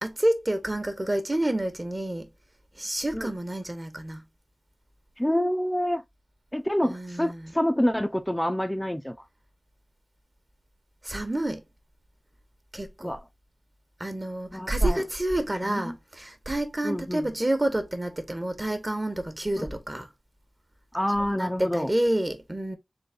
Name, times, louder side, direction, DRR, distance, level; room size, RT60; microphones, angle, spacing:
voice 1, 0.0-2.3 2.8-4.2 6.8-7.5 11.0-11.6 12.7-13.1 14.0-20.1 21.3-22.8, right 1 dB, 30° right, 1.3 m, -28 dB
voice 2, 5.2-6.0 6.5-9.1 13.0-13.2 14.5-15.0 15.6-15.9 16.8-17.3 19.6-19.7 20.9-21.9, equal, 10° left, 0.6 m, -27 dB
3.9 x 3.4 x 3.6 m
wide cardioid pair, 50°, 0 cm